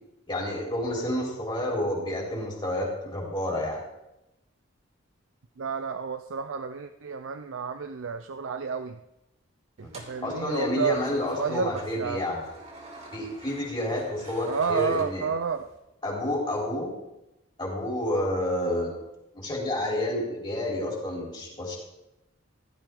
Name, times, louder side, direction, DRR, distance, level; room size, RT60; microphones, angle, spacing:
voice 1, 0.3-3.8 9.8-9.9 10.2-12.4 13.1-15.2 16.0-17.0 17.6-18.9 19.3-21.8, left 1 dB, 25° left, -3 dB, 3.9 m, -29 dB
voice 2, 5.6-9.0 9.8-12.2 14.5-15.7, right 6 dB, 75° right, 9 dB, 0.5 m, -31 dB
sound 1, 9.8-15.8, right 2 dB, 35° right, 2.9 m, -48 dB
16.0 x 12.0 x 3.8 m, 0.91 s
head